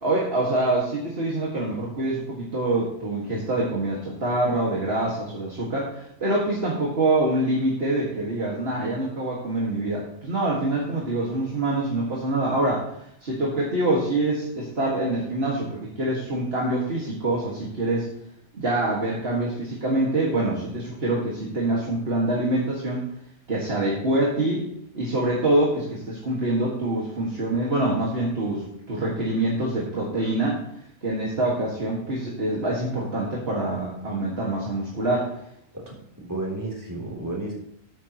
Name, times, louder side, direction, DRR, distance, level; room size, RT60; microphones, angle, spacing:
voice 1, 0.0-12.9 13.2-18.1 18.5-23.0 23.5-24.7 24.9-30.6 31.0-35.3, right 2 dB, 65° right, -4 dB, 2.3 m, -25 dB
voice 2, 35.7-37.5, right 2 dB, 15° right, -3 dB, 3.5 m, -33 dB
13.5 x 9.2 x 3.1 m, 0.74 s
omnidirectional pair, 1.1 m